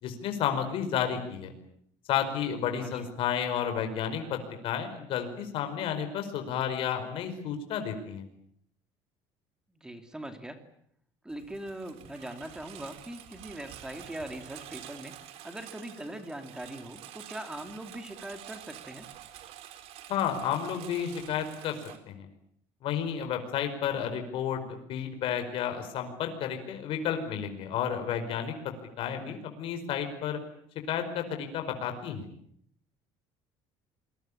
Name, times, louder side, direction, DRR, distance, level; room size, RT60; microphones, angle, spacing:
voice 1, 0.0-1.5 2.1-8.3 20.1-21.8 22.1-22.3 22.8-30.4 30.9-32.3, left 8 dB, 55° left, 6 dB, 5.0 m, -32 dB
voice 2, 9.7-10.6 11.2-15.1 15.4-19.1 29.2-29.4, right 1 dB, 5° right, 7 dB, 2.9 m, -41 dB
Engine, 11.3-22.0, right 12 dB, 70° right, 3.9 m, -48 dB
28.0 x 22.0 x 8.7 m, 0.67 s
cardioid pair, 150°, 11 cm